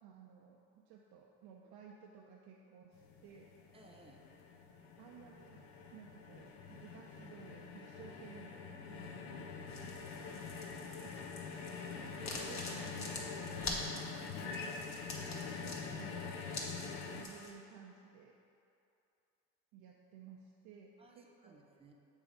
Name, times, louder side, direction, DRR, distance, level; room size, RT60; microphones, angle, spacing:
voice 1, 0.0-3.5 5.0-5.6 5.9-10.3 11.0-11.2 11.9-14.9 15.6-16.4 16.7-18.4 19.7-21.6, right 7 dB, 75° right, -1 dB, 0.6 m, -56 dB
sound 1, 2.9-17.2, left 5 dB, 85° left, 0.6 m, -45 dB
voice 2, 3.7-4.2 10.5-10.9 15.1-15.5 21.0-21.9, right 2 dB, 15° right, 1 dB, 0.8 m, -60 dB
sound 2, 9.7-17.5, left 2 dB, 45° left, 1.2 m, -46 dB
7.2 x 3.3 x 5.1 m, 2.7 s
hypercardioid pair, 55°, 39 cm